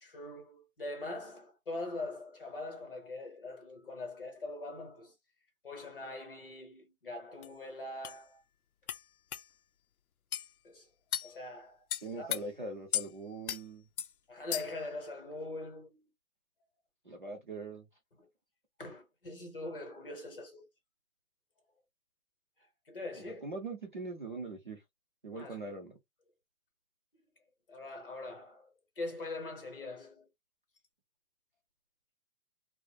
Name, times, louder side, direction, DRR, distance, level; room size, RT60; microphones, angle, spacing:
voice 1, 0.0-5.1 5.6-8.4 10.6-10.9 11.2-11.8 12.2-12.3 14.3-16.1 18.2-18.3 18.8-20.7 22.9-23.5 25.4-25.6 27.7-30.3, left 2 dB, 40° left, 0.8 m, -42 dB
sound 1, 7.4-7.5 8.0-8.2 8.9-9.0 9.3-9.4 10.3-10.5 11.1-11.3 11.9-12.4 12.9-13.1 13.5-13.6 14.0-14.1 14.5-14.8, left 10 dB, 90° left, 0.6 m, -35 dB
voice 2, 12.0-13.9 17.0-17.9 23.4-24.8 25.2-25.9, right 3 dB, 35° right, 0.6 m, -41 dB
2.4 x 2.1 x 2.9 m
hypercardioid pair, 175°, 42 cm